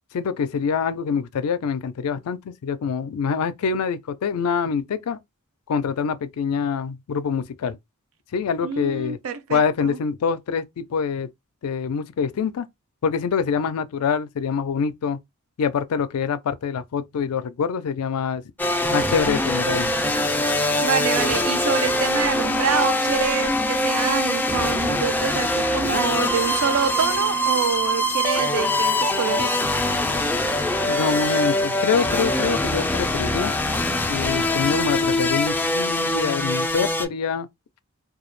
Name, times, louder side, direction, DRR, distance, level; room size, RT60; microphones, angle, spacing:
voice 1, 0.1-5.2 5.7-7.8 8.3-9.2 9.5-11.3 11.6-12.7 13.0-15.2 15.6-18.4 18.9-19.9 30.9-33.5 34.1-37.5, left 6 dB, 80° left, 0.4 m, -25 dB
voice 2, 8.6-10.0 20.8-29.6, right 6 dB, 65° right, 0.4 m, -26 dB
sound 1, 18.6-37.1, left 1 dB, 10° left, 0.3 m, -23 dB
2.2 x 2.0 x 3.0 m
head